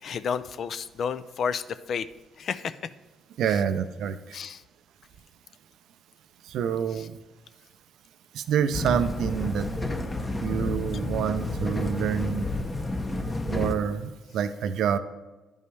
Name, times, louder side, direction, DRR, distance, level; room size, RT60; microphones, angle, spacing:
voice 1, 0.0-2.1 2.4-2.7 3.5-3.6 4.3-4.6 7.0-7.1, left 6 dB, 60° left, 14 dB, 0.4 m, -31 dB
voice 2, 3.4-4.2 6.5-7.2 8.3-9.7 10.4-12.5 13.4-15.0, right 8 dB, 80° right, 11 dB, 0.4 m, -27 dB
sound 1, 8.7-13.7, left 2 dB, 20° left, 0.8 m, -30 dB
10.5 x 5.3 x 3.3 m, 1.1 s
cardioid pair, 90°, 0 cm